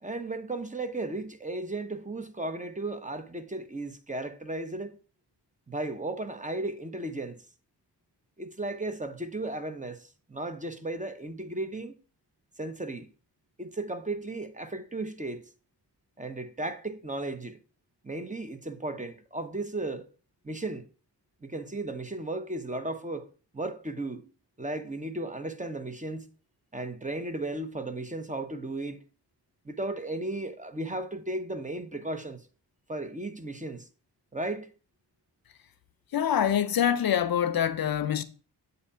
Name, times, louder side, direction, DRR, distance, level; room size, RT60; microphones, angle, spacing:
voice 1, 0.0-5.0 5.7-7.4 8.4-12.0 12.6-13.1 13.6-15.5 16.2-17.6 18.0-20.1 20.4-20.8 21.4-23.3 23.5-24.3 24.6-26.3 26.7-29.0 29.6-32.4 32.9-33.9 34.3-34.7, right 2 dB, 20° right, 0.8 m, -35 dB
voice 2, 36.1-38.2, left 9 dB, 55° left, 0.6 m, -25 dB
8.0 x 2.7 x 5.5 m
cardioid pair, 55°, 42 cm